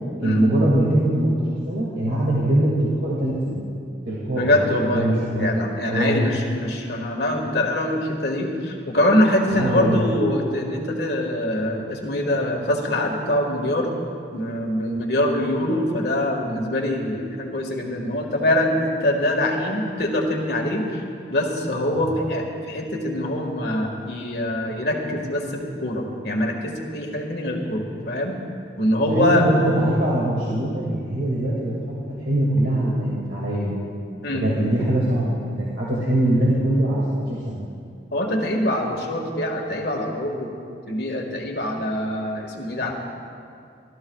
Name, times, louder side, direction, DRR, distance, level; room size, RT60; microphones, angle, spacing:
voice 1, 0.2-1.3 1.7-3.6 4.1-4.5 4.8-6.3 9.5-10.0 21.9-22.1 29.1-33.8 34.3-37.6, right 1 dB, 75° right, -6 dB, 2.3 m, -22 dB
voice 2, 4.3-5.1 5.4-13.9 14.3-21.0 21.3-28.4 28.8-29.5 34.2-34.5 38.1-40.5 40.9-42.9, left 1 dB, 65° left, 1 dB, 1.9 m, -24 dB
27.0 x 13.5 x 2.4 m, 2.4 s
head